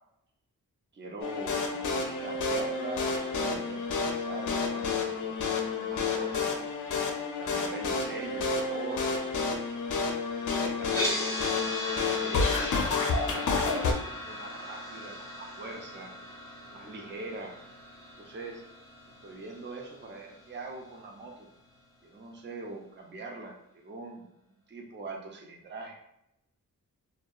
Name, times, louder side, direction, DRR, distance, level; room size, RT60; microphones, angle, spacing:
voice 1, 0.9-3.1 3.3-5.3 5.8-6.6 7.4-9.1 10.3-11.3 11.8-12.6 12.9-16.1 16.7-17.5 18.2-18.6 19.2-21.5 22.0-26.0, right 2 dB, 35° right, 1 dB, 0.5 m, -42 dB
sound 1, 1.2-13.9, left 4 dB, 60° left, 0.5 m, -30 dB
sound 2, 10.8-20.9, left 1 dB, 10° left, 0.8 m, -38 dB
2.7 x 2.1 x 2.2 m, 0.80 s
wide cardioid pair, 95°, 34 cm